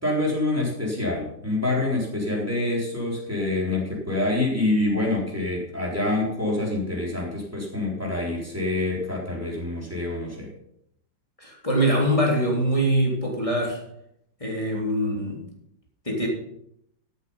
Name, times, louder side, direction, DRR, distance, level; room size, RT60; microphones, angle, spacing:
voice 1, 0.0-10.5, left 2 dB, 5° right, -3 dB, 4.0 m, -26 dB
voice 2, 11.4-13.8 14.4-15.4 16.1-16.3, right 1 dB, 15° left, -1 dB, 3.4 m, -23 dB
13.5 x 8.5 x 5.6 m, 0.75 s
omnidirectional pair, 2.0 m